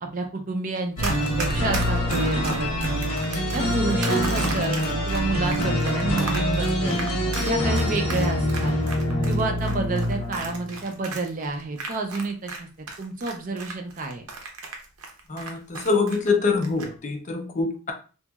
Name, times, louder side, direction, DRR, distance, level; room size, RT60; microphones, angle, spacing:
voice 1, 0.0-7.0 7.4-8.8 9.3-12.7 13.0-14.2, right 3 dB, 35° right, 5 dB, 0.4 m, -30 dB
sound 1, 1.0-10.8, equal, 80° left, 1.0 m, -25 dB
Run, 1.0-12.6 12.9-16.3 16.6-16.9, right 4 dB, 85° right, 0.7 m, -35 dB
voice 2, 15.3-17.9, left 4 dB, 35° left, 4 dB, 0.4 m, -25 dB
2.9 x 2.7 x 2.3 m, 0.36 s
head